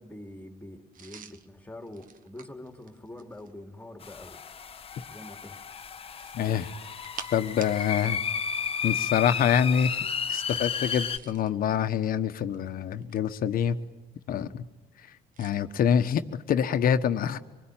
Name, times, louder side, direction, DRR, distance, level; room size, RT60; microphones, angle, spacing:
voice 1, 0.0-4.4 5.1-5.6, left 1 dB, 10° left, 5 dB, 2.7 m, -45 dB
sound 1, 0.9-3.6 6.0-8.2 8.4-8.6 10.8-11.6 12.3-13.4 15.3-15.6, right 7 dB, 55° right, 1.5 m, -48 dB
sound 2, 4.0-11.2, left 7 dB, 35° left, 1.1 m, -33 dB
voice 2, 6.3-6.7 7.3-8.2 8.8-10.0 10.3-13.8 14.3-14.6 15.4-17.4, left 8 dB, 60° left, 10 dB, 1.3 m, -26 dB
25.5 x 20.5 x 9.1 m, 1.1 s
cardioid pair, 110°, 17 cm